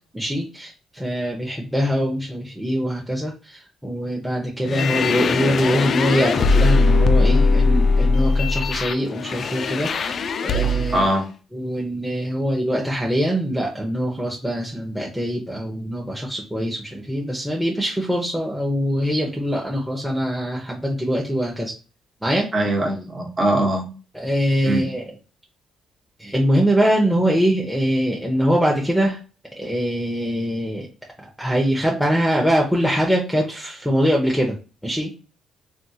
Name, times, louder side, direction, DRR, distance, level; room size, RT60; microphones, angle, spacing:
voice 1, 0.1-11.1 11.5-21.7 22.2-22.5 24.1-25.1 26.2-29.2 29.6-30.9 31.4-34.6 34.8-35.1, equal, ahead, -1 dB, 0.8 m, -23 dB
sound 1, 4.6-11.1, left 3 dB, 55° left, 0.3 m, -20 dB
voice 2, 10.9-11.2 22.5-23.9 24.6-24.8, right 1 dB, 35° right, 0 dB, 1.1 m, -21 dB
3.4 x 2.3 x 2.8 m, 0.34 s
cardioid pair, 90°, 0 cm